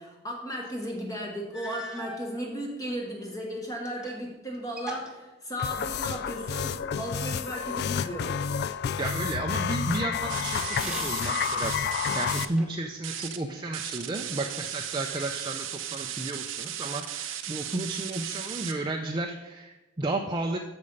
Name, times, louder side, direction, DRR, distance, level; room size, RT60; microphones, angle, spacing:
voice 1, 0.0-8.3, equal, 20° left, -1 dB, 1.2 m, -35 dB
sound 1, 0.9-1.0 1.5-2.3 3.1-4.3 4.5-6.1 10.6-11.4 11.9-12.9 13.7-14.5 15.1-15.9, equal, 5° right, 1.1 m, -43 dB
sound 2, 5.6-12.4, left 7 dB, 55° left, 0.3 m, -30 dB
voice 2, 9.0-20.6, right 2 dB, 25° right, 2 dB, 0.5 m, -33 dB
sound 3, 10.3-12.5 13.0-13.4 13.7-18.7, right 10 dB, 80° right, 0.7 m, -36 dB
8.4 x 6.9 x 5.4 m, 1.1 s
head